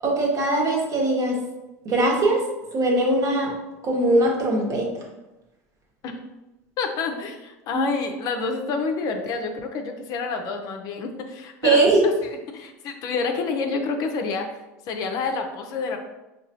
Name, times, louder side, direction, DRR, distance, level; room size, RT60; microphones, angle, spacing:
voice 1, 0.0-1.4 1.8-2.5 2.7-3.5 3.8-4.9 7.7-7.9 11.6-12.1, right 2 dB, 45° right, -1 dB, 1.1 m, -21 dB
voice 2, 6.8-12.1 12.5-14.5 14.9-16.0, left 4 dB, 50° left, 4 dB, 0.5 m, -28 dB
4.8 x 2.3 x 2.7 m, 1.0 s
hypercardioid pair, 85°, 8 cm